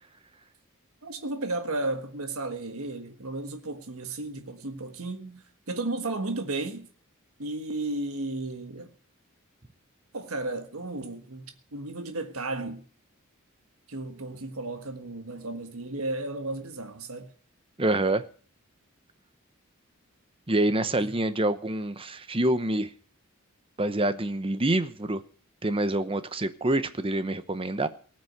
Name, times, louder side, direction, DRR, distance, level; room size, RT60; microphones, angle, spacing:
voice 1, 1.0-6.9 7.4-8.9 10.1-12.8 13.9-17.3 21.0-21.1, right 2 dB, 85° right, 1.5 m, -34 dB
voice 2, 17.8-18.2 20.5-22.9 23.8-25.2 25.6-27.9, right 1 dB, 25° right, 0.9 m, -26 dB
19.0 x 6.3 x 8.0 m
head